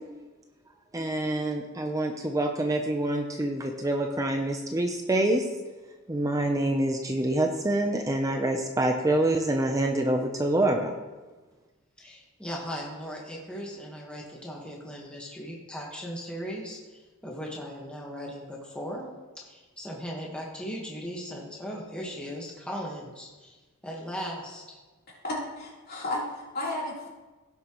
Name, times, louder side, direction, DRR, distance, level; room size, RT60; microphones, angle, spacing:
voice 1, 0.9-5.5 6.1-10.9, right 1 dB, 15° right, 4 dB, 0.6 m, -26 dB
voice 2, 12.0-19.0 19.3-23.6 23.8-24.8, equal, 5° left, -3 dB, 1.3 m, -38 dB
voice 3, 25.2-27.1, left 1 dB, 45° left, -5 dB, 3.4 m, -33 dB
17.0 x 7.2 x 3.0 m, 1.2 s
head